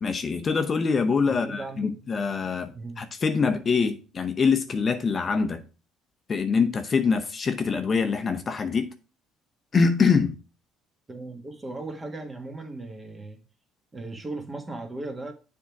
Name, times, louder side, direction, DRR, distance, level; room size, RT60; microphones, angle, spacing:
voice 1, 0.0-5.6 6.3-8.9 9.7-10.4, left 5 dB, 35° left, 0.7 m, -24 dB
voice 2, 1.3-2.0 2.7-3.0 11.1-13.4 13.9-15.3, right 2 dB, 20° right, 1.5 m, -37 dB
7.3 x 3.6 x 5.8 m
cardioid pair, 105°, 0 cm